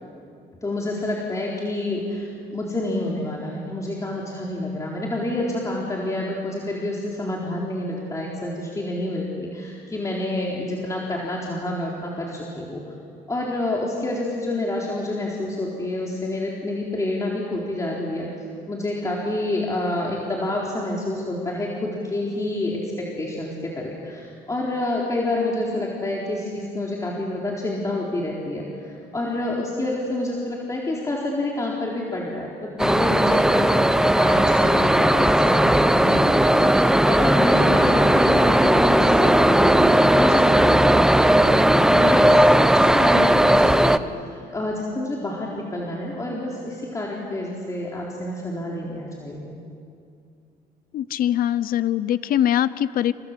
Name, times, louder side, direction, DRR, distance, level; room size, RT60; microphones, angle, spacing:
voice 1, 0.6-12.8 13.3-18.3 18.7-49.5, left 1 dB, 20° left, -3 dB, 4.1 m, -28 dB
sound 1, 32.8-44.0, right 1 dB, 5° right, 0.8 m, -17 dB
voice 2, 50.9-53.1, left 11 dB, 60° left, 16 dB, 0.8 m, -22 dB
29.5 x 26.0 x 7.7 m, 2.4 s
cardioid pair, 110°, 17 cm